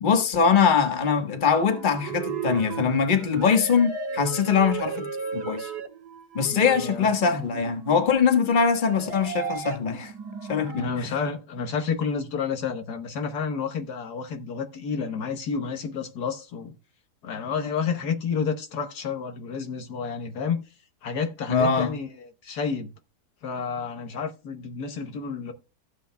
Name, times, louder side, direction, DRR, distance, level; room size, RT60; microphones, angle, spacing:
voice 1, 0.0-5.1 5.3-5.7 6.3-10.1 10.5-11.1 21.5-21.9, left 6 dB, 30° left, 1.3 m, -22 dB
sound 1, 1.5-10.9, right 6 dB, 70° right, 1.9 m, -35 dB
voice 2, 6.5-7.1 10.7-16.7 17.2-20.6 21.0-22.9 23.4-25.5, left 6 dB, 70° left, 1.5 m, -30 dB
15.0 x 7.8 x 2.2 m
omnidirectional pair, 1.8 m